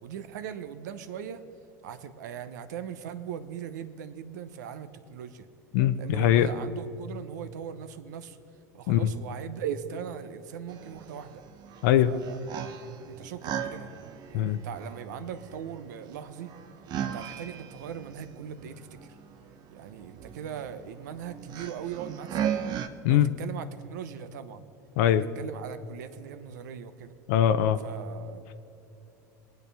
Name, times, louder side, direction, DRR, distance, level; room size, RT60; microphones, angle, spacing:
voice 1, 0.0-1.4 1.8-5.5 5.9-8.4 8.7-11.4 12.0-12.4 13.1-13.9 14.3-16.5 16.9-19.2 19.7-22.6 23.1-24.6 25.0-27.2 27.8-28.5, right 8 dB, 80° right, 11 dB, 0.8 m, -39 dB
voice 2, 5.7-6.5 8.9-9.1 11.8-12.1 14.3-14.6 23.0-23.3 25.0-25.2 27.3-27.8, left 11 dB, 75° left, 10 dB, 0.6 m, -22 dB
sound 1, 10.7-22.9, right 9 dB, 50° right, 0.8 m, -38 dB
21.5 x 9.0 x 3.4 m, 2.9 s
hypercardioid pair, 95°, 9 cm